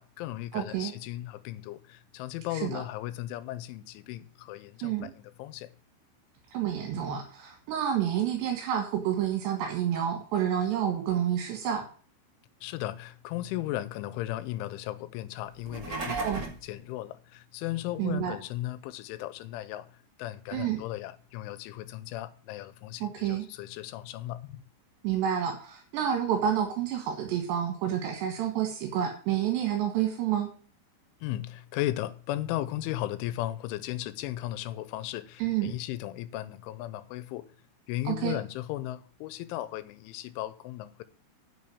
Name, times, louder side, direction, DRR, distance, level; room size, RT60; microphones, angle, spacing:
voice 1, 0.0-5.7 12.6-24.6 31.2-37.5 37.9-41.0, left 15 dB, 85° left, 3.1 m, -36 dB
voice 2, 0.5-0.9 2.5-2.8 4.8-5.1 6.5-11.8 16.1-16.4 18.0-18.4 20.5-20.8 23.0-23.5 25.0-30.5 35.4-35.7 38.1-38.4, right 9 dB, 70° right, 3.8 m, -29 dB
sound 1, 15.5-16.7, right 3 dB, 40° right, 1.3 m, -36 dB
9.5 x 6.4 x 8.6 m
omnidirectional pair, 5.5 m